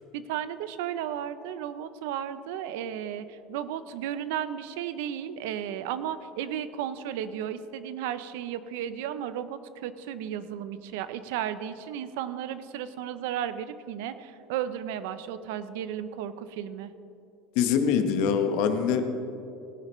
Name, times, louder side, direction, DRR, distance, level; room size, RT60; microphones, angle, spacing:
voice 1, 0.1-16.9, right 10 dB, 75° right, 13 dB, 0.6 m, -34 dB
voice 2, 17.5-19.0, left 7 dB, 60° left, 7 dB, 0.9 m, -24 dB
17.5 x 10.5 x 3.1 m, 2.8 s
cardioid pair, 175°, 0 cm